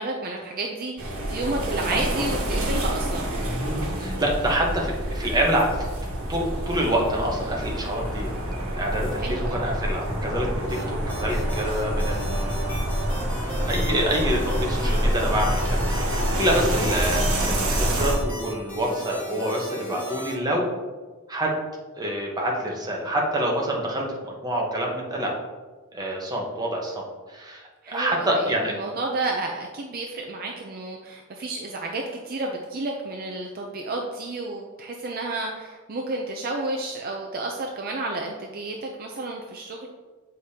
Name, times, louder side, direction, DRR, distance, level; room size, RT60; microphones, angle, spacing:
voice 1, 0.0-3.3 9.2-9.7 27.8-39.9, right 2 dB, 45° right, 1 dB, 0.5 m, -31 dB
sound 1, 1.0-18.2, equal, 75° right, 1.5 m, -27 dB
voice 2, 4.0-5.9 6.3-12.8 13.6-20.7 21.3-21.6 22.0-25.3 25.9-28.7, right 1 dB, 20° right, -2 dB, 1.0 m, -27 dB
sound 2, 10.7-20.3, equal, 10° left, 1.8 m, -37 dB
7.7 x 4.9 x 2.8 m, 1.4 s
head